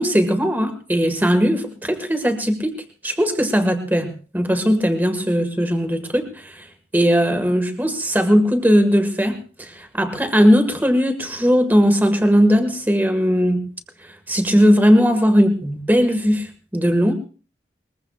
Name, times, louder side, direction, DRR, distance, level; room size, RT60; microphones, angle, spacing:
voice 1, 0.0-13.6 14.0-17.1, equal, 10° right, 6 dB, 1.7 m, -18 dB
21.5 x 21.0 x 2.4 m, 0.38 s
head